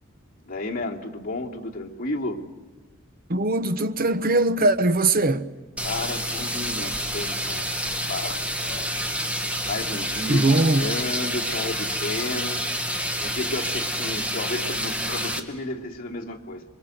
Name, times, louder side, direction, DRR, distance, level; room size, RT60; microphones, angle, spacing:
voice 1, 0.5-2.4 5.8-7.7 8.1-9.1 9.6-12.7 13.2-16.6, left 2 dB, 45° left, 2.9 m, -32 dB
voice 2, 3.3-5.5 10.3-10.9, right 2 dB, 45° right, 1.0 m, -21 dB
sound 1, 5.8-15.4, equal, 5° right, 1.7 m, -28 dB
27.5 x 23.5 x 8.0 m
head